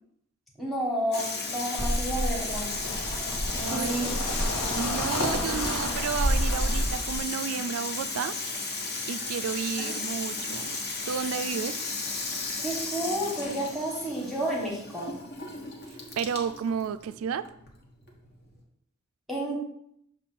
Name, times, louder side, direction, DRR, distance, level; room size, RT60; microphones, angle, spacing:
voice 1, 0.6-2.7 3.7-4.1 9.8-9.9 12.6-15.1 19.3-19.6, right 1 dB, ahead, -4 dB, 1.2 m, -31 dB
Water tap faucet / Sink (filling or washing), 1.1-18.6, left 3 dB, 50° left, 1.1 m, -34 dB
ns carbygravel, 1.8-7.2, equal, 90° left, 1.2 m, -29 dB
voice 2, 3.6-3.9 4.7-8.3 9.1-10.8 11.1-11.8 16.2-17.5, right 7 dB, 80° right, 13 dB, 0.3 m, -32 dB
6.7 x 2.6 x 5.3 m, 0.74 s
head